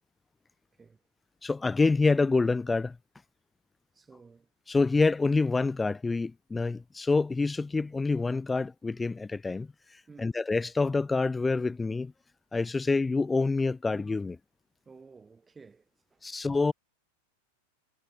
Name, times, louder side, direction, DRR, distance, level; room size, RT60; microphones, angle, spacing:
voice 1, 1.4-3.0 4.7-9.7 10.2-12.1 12.5-14.4 16.2-16.7, left 3 dB, 10° left, 1.0 m, -27 dB
voice 2, 3.9-4.5 10.1-10.4 14.8-15.8 16.1-16.2, right 4 dB, 15° right, 5.1 m, -53 dB
figure-of-eight pair, 90°, 0 cm